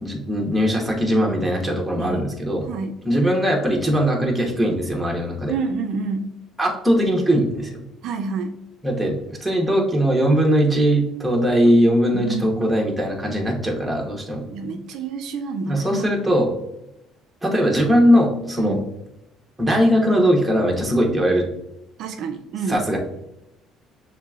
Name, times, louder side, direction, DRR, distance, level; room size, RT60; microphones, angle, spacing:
voice 1, 0.0-2.7 3.0-5.5 6.6-7.8 8.8-14.4 15.7-16.5 17.4-18.8 19.6-21.5 22.7-23.0, equal, 5° right, -1 dB, 1.0 m, -20 dB
voice 2, 1.9-2.3 2.6-3.0 5.5-6.3 8.0-8.6 12.1-12.5 14.4-16.1 18.6-18.9 22.0-22.8, right 4 dB, 65° right, 5 dB, 0.4 m, -28 dB
6.6 x 3.3 x 2.4 m, 0.86 s
cardioid pair, 125°, 0 cm